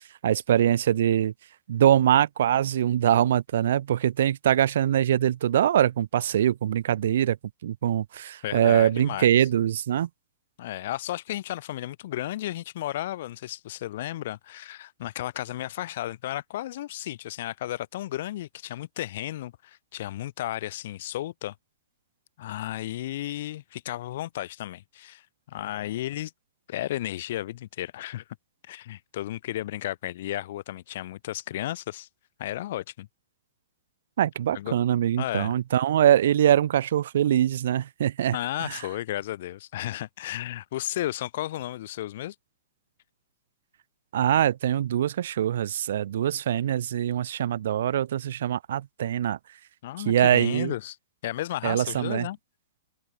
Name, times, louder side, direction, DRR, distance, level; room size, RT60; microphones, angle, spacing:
voice 1, 0.2-1.3 1.7-7.4 7.6-10.1 34.2-38.8 44.1-49.4 50.1-50.7 51.6-52.3, right 11 dB, 60° right, 0.5 m, -23 dB
voice 2, 8.4-9.3 10.6-21.5 22.4-25.2 25.5-26.3 26.7-28.2 28.6-32.1 32.4-33.1 34.5-34.7 35.2-35.6 38.3-42.4 49.8-51.0 51.2-52.4, left 14 dB, 50° left, 1.9 m, -33 dB
hypercardioid pair, 170°, 0 cm